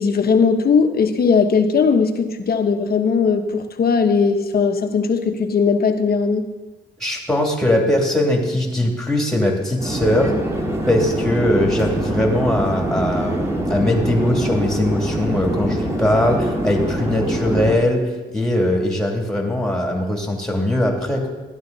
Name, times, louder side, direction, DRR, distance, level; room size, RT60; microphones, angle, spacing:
voice 1, 0.0-6.5, left 5 dB, 50° left, 6 dB, 1.1 m, -18 dB
voice 2, 7.0-10.3 10.9-18.0 18.3-21.3, left 1 dB, 5° left, 1 dB, 2.6 m, -20 dB
Conversation / Chatter / Fixed-wing aircraft airplane, 9.8-17.8, right 1 dB, 15° right, 2.0 m, -24 dB
13.0 x 11.0 x 4.0 m, 1.2 s
cardioid pair, 90°, 20 cm